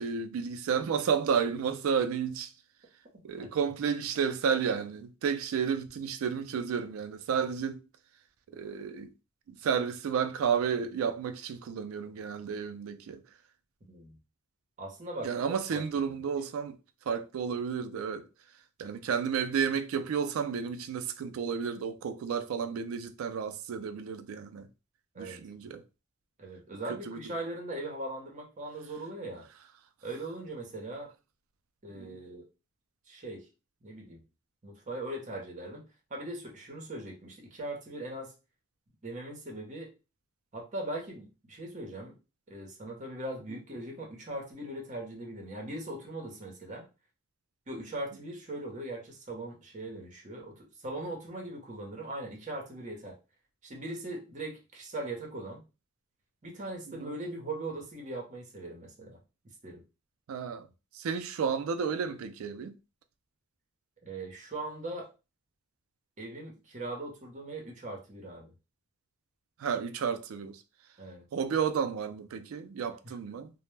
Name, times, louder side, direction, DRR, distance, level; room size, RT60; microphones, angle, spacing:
voice 1, 0.0-2.5 3.2-7.8 8.5-9.1 9.5-13.2 15.2-16.8 17.1-18.3 18.8-24.7 25.2-25.8 26.7-27.2 31.9-32.2 57.0-57.1 60.3-60.7 60.9-62.8 69.6-70.6 71.3-73.5, right 6 dB, 75° right, 0.3 m, -32 dB
voice 2, 13.8-14.2 14.8-16.1 25.1-25.4 26.4-29.5 30.0-31.1 31.8-32.4 33.1-33.5 33.8-34.2 34.6-35.8 36.1-38.3 39.0-39.9 40.5-42.1 42.5-46.9 47.7-53.2 53.6-55.6 56.4-59.2 59.6-59.8 64.0-65.1 66.2-68.5 71.0-71.2 73.0-73.1, right 1 dB, 35° right, 0.7 m, -40 dB
2.1 x 2.0 x 3.1 m
head